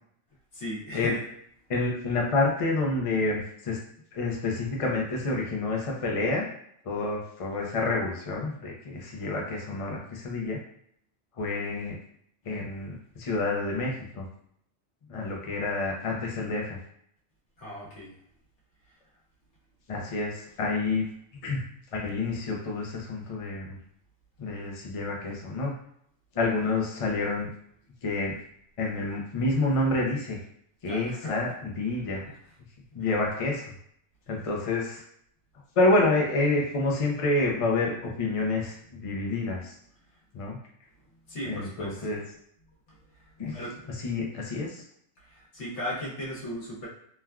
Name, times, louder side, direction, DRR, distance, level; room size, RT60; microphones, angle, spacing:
voice 1, 0.5-1.2 17.6-18.1 30.9-31.3 41.3-42.0 43.5-43.7 45.3-46.9, equal, 70° left, -6 dB, 1.4 m, -36 dB
voice 2, 1.7-3.8 4.1-6.5 6.8-10.6 11.4-12.0 12.5-14.2 15.1-16.8 19.9-21.0 21.4-21.6 21.9-23.8 24.4-25.8 26.3-27.5 28.0-28.3 28.8-30.4 30.8-32.3 32.9-33.7 34.3-35.0 35.8-39.8 40.3-40.6 41.4-42.2 43.4-43.6 43.9-44.8, left 2 dB, 45° left, -2 dB, 0.4 m, -28 dB
3.3 x 2.2 x 2.3 m, 0.67 s
omnidirectional pair, 1.2 m